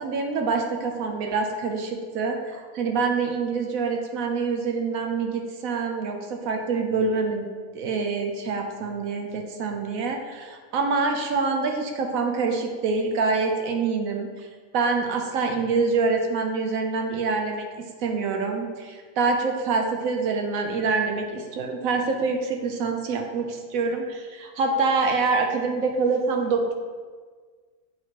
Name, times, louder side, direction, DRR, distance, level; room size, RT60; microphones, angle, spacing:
voice 1, 0.0-7.5 7.7-14.3 14.7-17.7 18.0-26.7, right 4 dB, 70° right, 3 dB, 1.0 m, -26 dB
8.0 x 4.4 x 2.9 m, 1.5 s
omnidirectional pair, 1.6 m